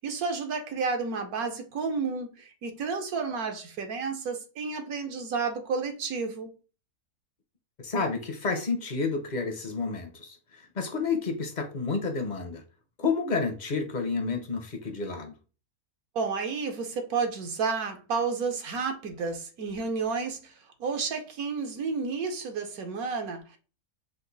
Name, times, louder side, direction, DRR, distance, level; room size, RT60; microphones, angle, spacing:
voice 1, 0.0-6.5 16.1-20.5 20.8-23.6, right 5 dB, 80° right, 1.3 m, -31 dB
voice 2, 7.8-10.4 10.8-12.6 13.0-15.3, left 4 dB, 45° left, 0.6 m, -30 dB
5.0 x 2.5 x 3.9 m
omnidirectional pair, 1.5 m